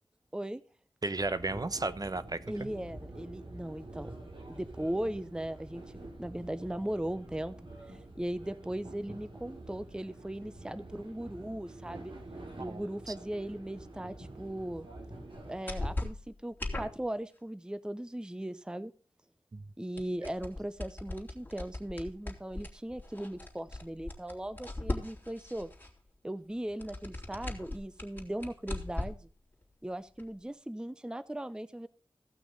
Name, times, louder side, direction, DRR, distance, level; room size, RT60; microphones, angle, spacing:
voice 1, 1.0-2.7 12.6-13.1 19.5-19.7, right 2 dB, 45° right, 14 dB, 0.9 m, -35 dB
sound 1, 1.1-15.6, right 1 dB, 70° right, 3.5 m, -47 dB
voice 2, 2.5-4.1 4.5-7.6 7.9-12.1 12.6-14.9 15.5-18.9 19.8-25.7 26.2-29.3 29.8-31.9, right 1 dB, 10° right, 14 dB, 0.6 m, -38 dB
sound 2, 15.3-15.4 15.7-17.1 20.0-26.0 26.7-29.2 29.6-29.7 30.2-30.3, left 2 dB, 20° left, 3.0 m, -39 dB
16.0 x 6.0 x 5.3 m, 0.41 s
wide cardioid pair, 65°, 9 cm